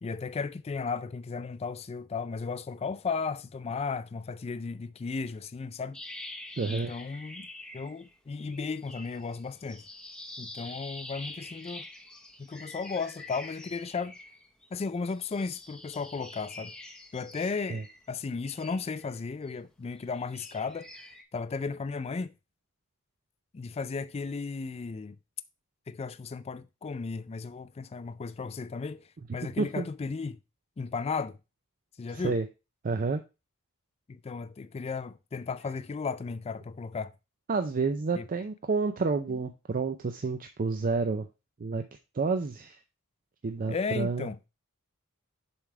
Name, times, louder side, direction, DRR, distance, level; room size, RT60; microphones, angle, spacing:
voice 1, 0.0-6.0 6.7-7.5 7.7-9.9 10.4-11.9 12.4-14.1 14.7-16.7 17.1-20.9 21.3-22.3 23.5-25.2 25.9-29.0 29.3-30.4 30.8-31.4 32.0-32.4 34.1-37.1 38.2-38.3 43.7-44.4, left 4 dB, 30° left, 0.3 m, -35 dB
sound 1, 5.9-8.1 8.4-14.7 15.1-19.5 20.0-21.2, left 2 dB, 5° left, 0.7 m, -46 dB
voice 2, 6.6-6.9 10.6-10.8 17.7-17.8 29.4-29.9 32.1-32.5 32.8-33.2 37.5-41.3 41.6-41.8 42.1-42.8 43.4-44.3, right 4 dB, 40° right, 0.4 m, -29 dB
7.2 x 3.4 x 4.7 m
head